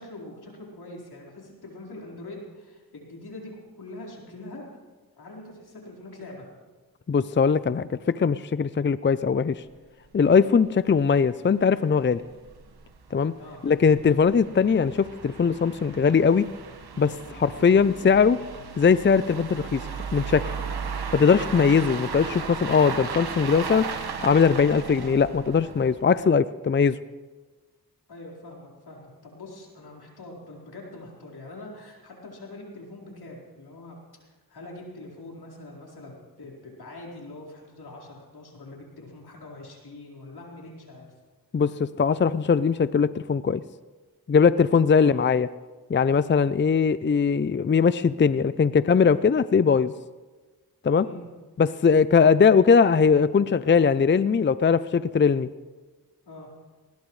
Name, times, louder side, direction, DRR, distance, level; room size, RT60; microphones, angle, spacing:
voice 1, 0.0-4.7 5.2-6.5 13.4-13.6 28.1-41.1 45.0-45.2 51.0-51.3 56.3-56.5, left 2 dB, 85° left, -3 dB, 4.6 m, -43 dB
voice 2, 7.1-9.6 10.1-12.2 13.1-13.3 13.6-16.5 17.0-18.4 18.8-19.8 20.1-20.5 21.1-23.9 24.2-27.0 41.5-43.6 44.3-45.5 45.9-49.9 50.8-51.0 51.6-55.5, left 6 dB, 30° left, 15 dB, 0.5 m, -20 dB
sound 1, 9.7-9.8 10.1-10.2 10.6-10.7 11.0-11.1 11.7-26.1, right 5 dB, 80° right, 1.6 m, -36 dB
20.0 x 20.0 x 3.3 m, 1.3 s
cardioid pair, 50°, 38 cm